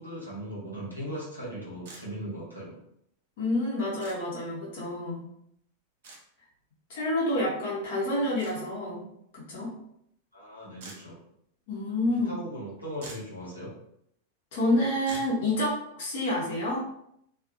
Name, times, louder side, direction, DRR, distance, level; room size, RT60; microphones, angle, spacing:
voice 1, 0.0-2.7 10.3-11.2 12.2-13.7, equal, 90° left, -7 dB, 1.1 m, -38 dB
sound 1, 1.8-2.0 4.0-4.2 6.0-6.2 8.4-8.6 10.8-11.0 12.6-12.7 13.0-13.3 15.1-15.3, right 2 dB, 55° right, 0.7 m, -44 dB
voice 2, 3.4-5.2 6.9-9.0 9.3-9.7 11.7-12.3 14.5-16.9, left 1 dB, 55° left, -6 dB, 1.0 m, -28 dB
2.6 x 2.6 x 2.5 m, 0.73 s
figure-of-eight pair, 90°, 0 cm